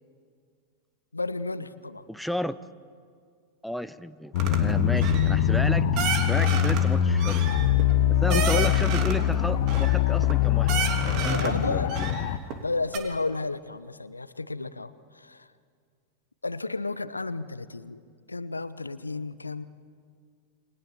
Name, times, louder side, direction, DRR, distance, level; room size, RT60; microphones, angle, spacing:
voice 1, 1.1-2.1 6.4-6.5 8.3-8.7 11.3-12.0 12.6-15.5 16.4-18.0 18.3-19.7, left 3 dB, 80° left, 15 dB, 0.9 m, -32 dB
voice 2, 2.1-2.6 3.6-5.9 6.3-7.5 8.1-11.9, equal, ahead, 13 dB, 0.8 m, -32 dB
sound 1, 4.3-12.4, left 10 dB, 50° left, 1.4 m, -23 dB
sound 2, 4.4-4.6 5.0-5.4 6.0-6.8 7.2-9.2 9.7-10.3 10.7-11.5 11.9-12.6 12.9-13.0, right 7 dB, 40° right, 3.1 m, -31 dB
28.5 x 25.0 x 7.2 m, 2.1 s
figure-of-eight pair, 90°, 0 cm